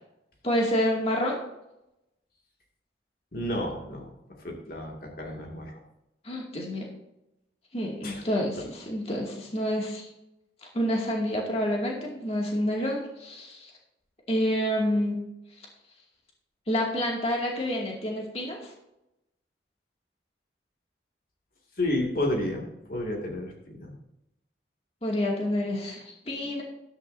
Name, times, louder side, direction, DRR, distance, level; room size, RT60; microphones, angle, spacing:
voice 1, 0.4-1.4 6.2-6.9 7.7-10.1 10.7-13.7 14.3-15.2 16.7-18.7 25.0-26.6, equal, 35° left, -1 dB, 2.3 m, -28 dB
voice 2, 3.3-5.8 8.0-8.2 21.8-23.9, left 1 dB, 55° left, 0 dB, 2.2 m, -31 dB
13.0 x 12.5 x 2.7 m, 0.87 s
head